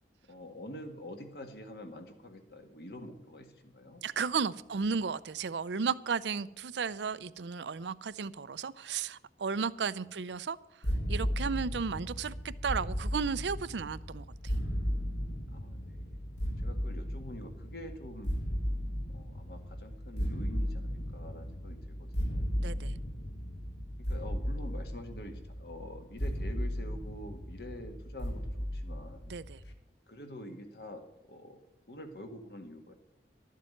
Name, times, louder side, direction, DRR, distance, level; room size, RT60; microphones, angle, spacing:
voice 1, 0.3-4.0 9.9-10.2 15.5-18.3 19.1-22.5 24.0-29.3 30.1-31.6 31.9-32.9, left 1 dB, 65° left, 6 dB, 1.8 m, -46 dB
voice 2, 4.0-10.6 11.1-14.5 22.6-22.9 29.3-29.6, right 5 dB, 85° right, 16 dB, 0.5 m, -34 dB
sound 1, 10.8-29.7, equal, 90° left, 1.4 m, -35 dB
12.0 x 7.5 x 9.1 m, 0.90 s
head